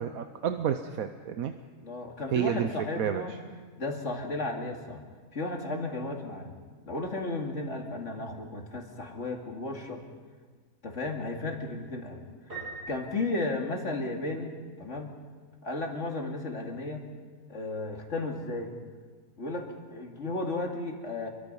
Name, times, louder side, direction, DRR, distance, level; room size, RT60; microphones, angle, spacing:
voice 1, 0.0-1.5 2.3-2.7 3.0-3.2, right 8 dB, 65° right, 8 dB, 1.2 m, -30 dB
voice 2, 1.8-3.3 3.8-5.0 5.3-6.5 6.8-10.0 10.8-14.5 14.8-15.1 15.6-17.0 17.5-18.7 19.4-21.3, left 2 dB, 45° left, 2 dB, 2.8 m, -34 dB
Piano, 12.5-14.3, right 3 dB, 80° right, 8.2 m, -43 dB
27.0 x 23.5 x 5.5 m, 1.5 s
omnidirectional pair, 1.7 m